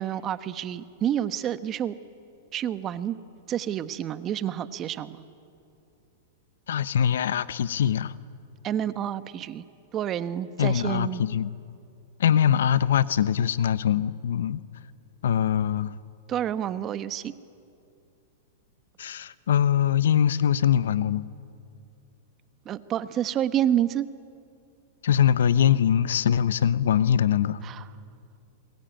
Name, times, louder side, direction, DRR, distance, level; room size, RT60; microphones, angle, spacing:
voice 1, 0.0-1.9 2.5-3.2 3.5-5.2 8.6-9.6 9.9-11.2 16.3-17.3 22.6-24.1 27.6-27.9, right 10 dB, 30° right, 1.0 m, -28 dB
voice 2, 6.7-8.2 10.6-11.5 12.2-14.6 15.2-16.0 19.0-21.2 25.0-27.6, left 9 dB, 80° left, 0.8 m, -22 dB
27.5 x 21.5 x 9.1 m
hypercardioid pair, 130°, 0 cm